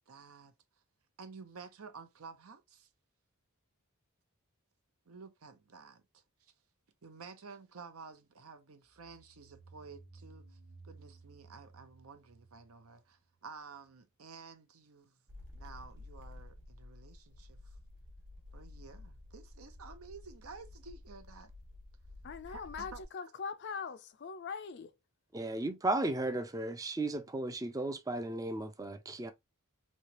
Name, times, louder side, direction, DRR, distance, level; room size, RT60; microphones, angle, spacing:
voice 1, 0.1-0.5 1.2-2.9 5.1-6.5 7.0-10.6 10.8-15.2 15.5-17.8 18.5-21.5 22.5-23.0, right 5 dB, 70° right, 0.7 m, -52 dB
sound 1, 9.0-13.5, right 3 dB, 35° right, 1.1 m, -57 dB
sound 2, 15.3-23.1, left 2 dB, 55° right, 1.2 m, -52 dB
voice 2, 22.2-24.9, left 5 dB, 50° left, 0.4 m, -41 dB
voice 3, 25.3-29.3, right 2 dB, 15° right, 0.4 m, -35 dB
3.2 x 2.8 x 2.9 m
head